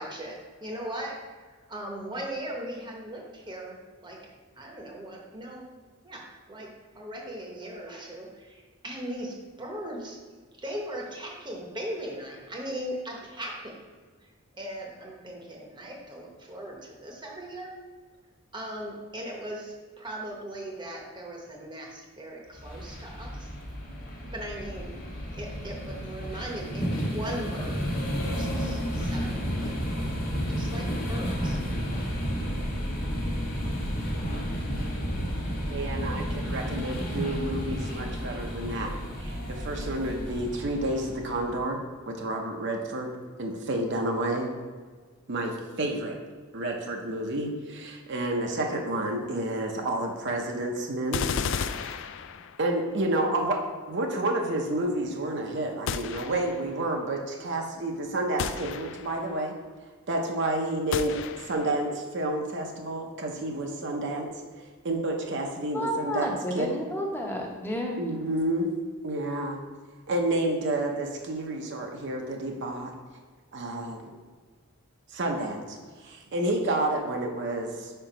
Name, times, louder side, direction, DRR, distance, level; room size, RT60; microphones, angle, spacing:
voice 1, 0.0-1.4 1.7-3.8 4.0-4.2 4.6-5.7 6.0-6.7 6.9-10.2 10.6-13.8 14.2-14.3 14.5-17.8 18.5-23.5 24.3-24.9 25.3-27.9 28.2-29.7 30.5-31.6, right 1 dB, 20° right, -1 dB, 0.9 m, -38 dB
sound 1, 22.6-41.6, equal, 40° left, 1.0 m, -32 dB
voice 2, 35.7-38.9 39.2-41.8 42.1-43.1 43.4-44.5 45.3-46.1 46.5-51.2 51.8-52.0 52.6-53.6 53.9-59.5 60.1-64.3 64.8-66.7 68.0-68.7 69.0-69.6 70.1-72.9 73.5-74.1 75.1-77.9, right 1 dB, 55° right, 1 dB, 0.7 m, -30 dB
sound 2, 51.1-52.8 55.9-56.7 58.4-59.3 60.9-61.8, left 6 dB, 60° left, 0.3 m, -33 dB
voice 3, 65.7-68.0, equal, 10° left, 0 dB, 0.8 m, -31 dB
5.0 x 4.5 x 5.0 m, 1.5 s
head